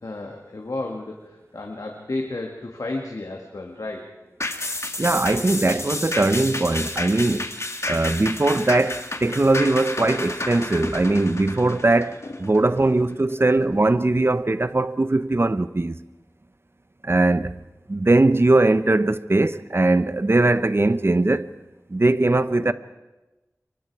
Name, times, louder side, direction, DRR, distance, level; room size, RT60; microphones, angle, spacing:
voice 1, 0.0-4.1 12.2-12.4 13.5-13.7 22.5-22.7, left 2 dB, 80° left, 2.1 m, -33 dB
sound 1, 4.4-13.1 13.5-13.6, left 2 dB, 50° left, 2.1 m, -31 dB
voice 2, 5.0-7.5 7.9-16.0 17.0-17.6 17.9-21.5 21.9-22.7, right 2 dB, 45° right, 0.9 m, -20 dB
28.5 x 24.0 x 4.8 m
wide cardioid pair, 60°, 6 cm